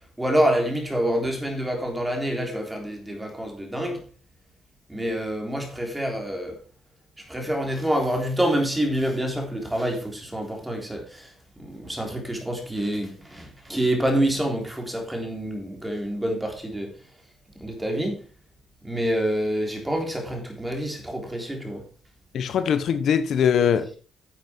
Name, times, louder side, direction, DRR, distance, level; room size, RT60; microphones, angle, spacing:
voice 1, 0.2-4.0 4.9-6.6 7.3-16.9 17.6-18.2 18.8-21.8, equal, 10° right, 3.6 m, -27 dB
voice 2, 22.3-24.0, left 8 dB, 65° left, 1.0 m, -22 dB
10.5 x 8.1 x 4.6 m
cardioid pair, 90°, 0 cm